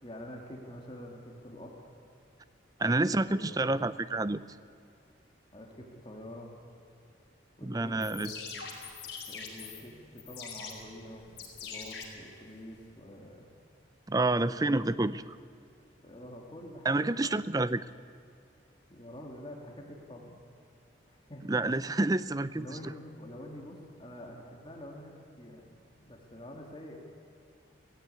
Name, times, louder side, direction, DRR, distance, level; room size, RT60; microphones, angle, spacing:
voice 1, 0.0-1.9 3.3-3.6 5.5-6.5 7.6-8.7 9.3-13.5 14.3-14.8 16.0-17.2 18.9-20.4 21.1-21.7 22.6-27.0, left 1 dB, 25° left, 0 dB, 2.3 m, -47 dB
voice 2, 2.8-4.4 7.6-8.3 14.1-15.2 16.8-17.9 21.4-22.9, right 2 dB, 20° right, 15 dB, 0.5 m, -28 dB
sound 1, 7.9-12.9, left 5 dB, 55° left, 5.1 m, -44 dB
17.5 x 16.0 x 9.7 m, 2.5 s
head